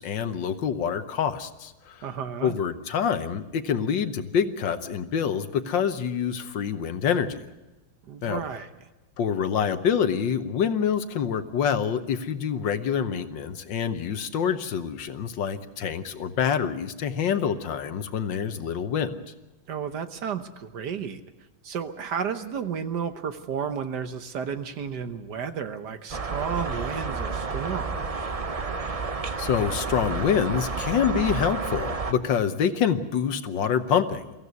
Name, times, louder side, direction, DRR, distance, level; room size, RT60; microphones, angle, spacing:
voice 1, 0.0-2.0 2.4-7.4 8.2-8.4 9.2-19.2 29.4-34.3, left 7 dB, 70° left, 10 dB, 1.7 m, -26 dB
voice 2, 2.0-2.5 8.1-8.7 19.7-21.2 21.6-28.1, right 7 dB, 60° right, 10 dB, 1.5 m, -32 dB
sound 1, 26.1-32.1, right 4 dB, 45° right, 0.4 m, -30 dB
23.5 x 15.0 x 9.4 m, 1.1 s
omnidirectional pair, 2.2 m